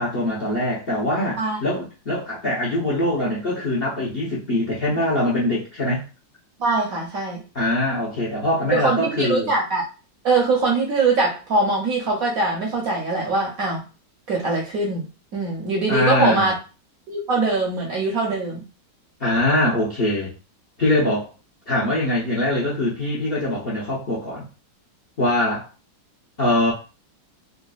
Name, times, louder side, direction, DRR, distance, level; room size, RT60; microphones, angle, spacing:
voice 1, 0.0-6.0 7.5-9.5 15.9-16.5 19.2-20.4 20.8-21.3 21.7-24.4 25.2-25.7 26.4-26.7, left 1 dB, 45° left, -5 dB, 0.8 m, -23 dB
voice 2, 6.6-7.4 8.7-9.8 10.2-13.8 14.3-15.1 15.3-16.5 17.1-18.6, right 3 dB, 60° right, -1 dB, 1.0 m, -22 dB
3.8 x 2.1 x 2.3 m, 0.31 s
omnidirectional pair, 2.0 m